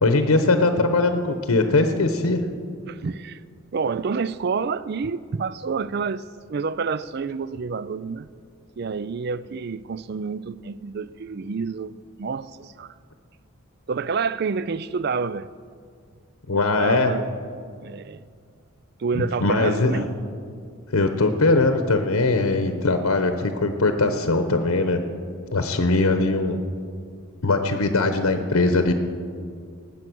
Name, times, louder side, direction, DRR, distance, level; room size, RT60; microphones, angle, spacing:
voice 1, 0.0-2.4 16.5-17.1 19.1-20.0 20.9-25.0 25.5-26.6 27.4-28.9, left 3 dB, 85° left, 0.9 m, -21 dB
voice 2, 2.9-3.4 3.7-8.3 8.8-12.9 13.9-15.5 16.5-17.3 17.8-18.3 19.0-20.1, right 5 dB, 50° right, 0.4 m, -28 dB
19.0 x 8.5 x 6.2 m
head